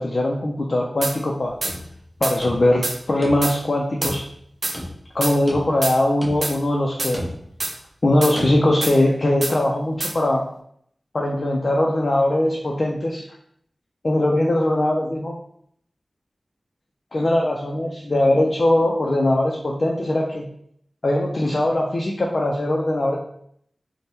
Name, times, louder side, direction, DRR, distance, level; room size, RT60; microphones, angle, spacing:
voice 1, 0.0-1.6 2.2-4.2 5.1-7.3 8.0-10.5 11.1-13.2 14.0-15.3 17.1-20.5 21.0-23.2, left 1 dB, 55° left, -1 dB, 0.4 m, -21 dB
sound 1, 1.0-1.2 1.6-1.7 2.2-2.4 2.8-3.0 3.4-3.6 4.0-4.1 4.6-4.8 5.2-5.3 5.8-6.0 6.4-6.5 7.0-7.1 7.6-7.7 8.2-8.3 8.8-8.9 9.4-9.5 10.0-10.1, right 2 dB, 60° right, 0.4 m, -26 dB
sound 2, 1.6-2.9 3.2-3.7 4.0-5.1 5.5-5.9 6.2-6.7 7.1-7.7 8.4-8.6, equal, 10° right, 0.7 m, -34 dB
3.4 x 2.1 x 2.7 m, 0.69 s
wide cardioid pair, 65°, 0 cm